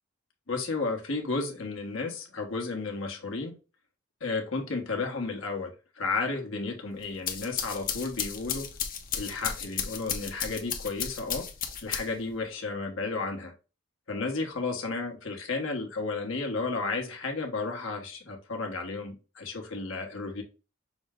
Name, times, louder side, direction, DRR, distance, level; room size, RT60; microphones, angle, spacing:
voice 1, 0.5-3.5 4.2-8.7 9.1-11.5 11.8-13.5 14.1-20.4, left 3 dB, 80° left, 1.3 m, -33 dB
sound 1, 7.0-12.3, left 7 dB, 45° left, 0.8 m, -34 dB
6.2 x 2.2 x 3.6 m
head